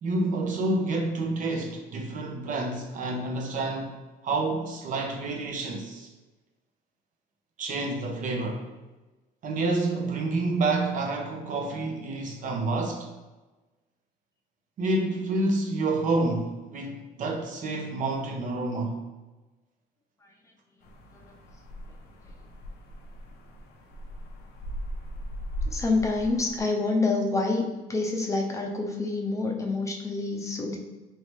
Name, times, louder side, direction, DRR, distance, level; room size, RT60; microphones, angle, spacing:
voice 1, 0.0-3.9 4.2-6.1 7.6-8.7 9.4-13.1 14.8-19.0, right 2 dB, 50° right, 2 dB, 0.6 m, -28 dB
sound 1, 20.8-26.6, equal, 75° left, 0.6 m, -38 dB
voice 2, 25.7-27.6 27.9-30.8, left 3 dB, 20° left, 1 dB, 0.5 m, -27 dB
3.1 x 2.8 x 3.1 m, 1.2 s
cardioid pair, 110°, 17 cm